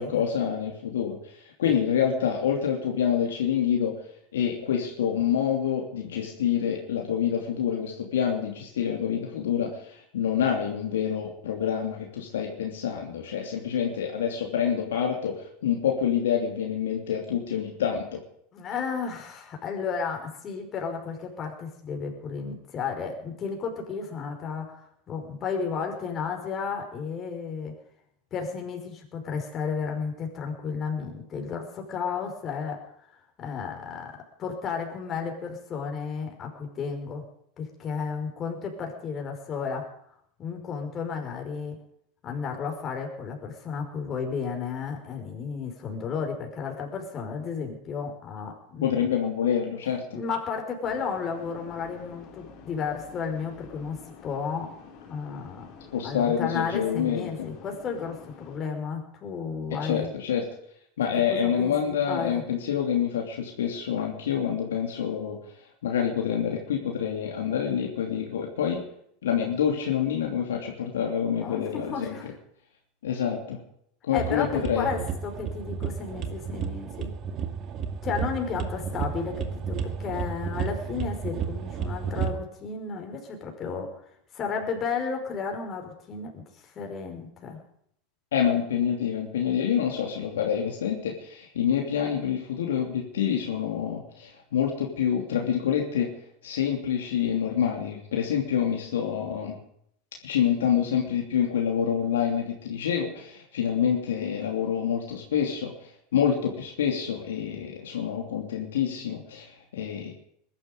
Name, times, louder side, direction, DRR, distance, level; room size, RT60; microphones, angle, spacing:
voice 1, 0.0-3.9 4.3-18.2 48.8-50.2 55.9-57.5 59.8-60.5 61.0-65.4 65.8-68.8 69.2-72.1 73.0-73.6 74.1-74.9 88.3-96.1 96.4-99.6 100.2-105.7 106.1-110.1, left 8 dB, 80° left, 1 dB, 2.9 m, -27 dB
voice 2, 18.5-27.8 28.3-32.8 33.1-37.2 37.6-39.9 40.4-41.8 42.2-49.0 50.1-54.7 55.1-55.7 56.0-60.1 61.1-62.4 71.4-72.3 74.1-77.1 78.0-84.0 84.3-87.6, left 5 dB, 35° left, 3 dB, 5.4 m, -33 dB
sound 1, 50.8-58.6, left 6 dB, 50° left, 4.6 m, -48 dB
sound 2, 74.2-82.3, right 7 dB, 45° right, 2.2 m, -32 dB
21.5 x 12.0 x 5.3 m, 0.69 s
hypercardioid pair, 85°, 0 cm